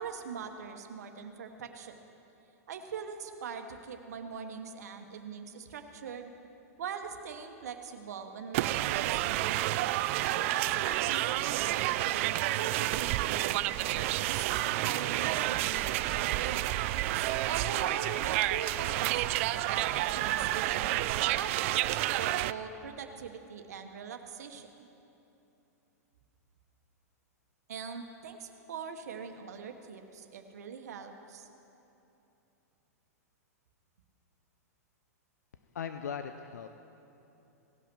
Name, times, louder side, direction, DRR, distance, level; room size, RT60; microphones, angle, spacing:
voice 1, 0.0-2.0 2.7-6.3 6.8-9.7 10.3-15.9 16.1-16.7 17.5-20.9 21.3-24.7 27.7-31.5, right 6 dB, 70° right, 6 dB, 1.0 m, -42 dB
sound 1, 8.5-22.5, right 15 dB, 50° right, 0.3 m, -30 dB
voice 2, 35.7-36.8, left 7 dB, 85° left, 8 dB, 0.5 m, -38 dB
17.5 x 5.8 x 6.0 m, 2.9 s
hypercardioid pair, 115°, 9 cm